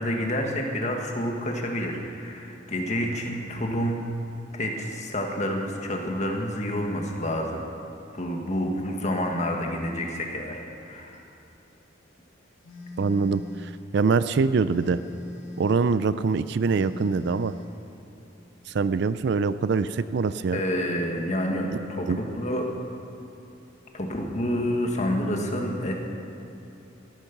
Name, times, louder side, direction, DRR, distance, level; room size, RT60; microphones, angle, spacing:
voice 1, 0.0-4.1 4.5-7.6 8.1-11.2 20.5-22.6 23.9-26.0, equal, 35° left, 2 dB, 1.6 m, -28 dB
Telephone, 12.6-13.8 14.6-15.8 16.6-17.8, left 1 dB, 80° left, 1.7 m, -40 dB
voice 2, 13.0-15.0 15.6-17.5 18.7-20.6 22.1-22.2, right 4 dB, 60° right, 14 dB, 0.4 m, -24 dB
14.0 x 12.0 x 5.9 m, 3.0 s
head